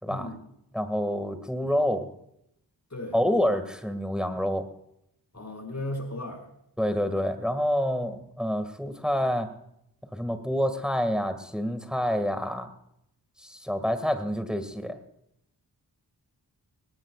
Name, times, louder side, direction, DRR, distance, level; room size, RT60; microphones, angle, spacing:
voice 1, 0.1-0.4 2.9-3.2 5.3-6.5, left 1 dB, 40° left, 2 dB, 5.1 m, -35 dB
voice 2, 0.7-2.1 3.1-4.6 6.8-9.5 10.1-12.7 13.4-15.0, equal, ahead, 8 dB, 2.0 m, -27 dB
19.5 x 18.0 x 2.4 m, 0.77 s
cardioid pair, 55°, 40 cm